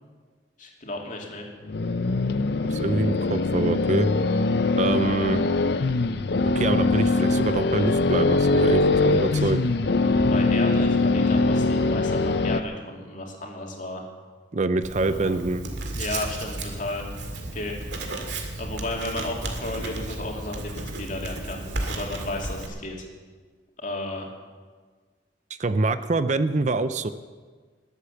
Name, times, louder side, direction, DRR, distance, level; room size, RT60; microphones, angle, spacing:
voice 1, 0.6-1.5 5.0-5.3 6.9-7.2 9.0-9.4 10.0-14.0 15.1-15.4 15.9-17.1 17.5-17.8 18.6-21.6 21.9-23.0 23.8-24.3, left 2 dB, 45° left, 0 dB, 2.7 m, -34 dB
sound 1, 1.7-12.6, left 3 dB, 60° left, 0.6 m, -22 dB
voice 2, 2.7-4.1 4.8-5.4 6.4-9.6 14.5-15.6 25.6-27.1, right 2 dB, 40° right, 12 dB, 0.5 m, -25 dB
Writing, 14.8-22.7, right 2 dB, 75° right, 2.1 m, -33 dB
20.5 x 8.3 x 7.1 m, 1.5 s
head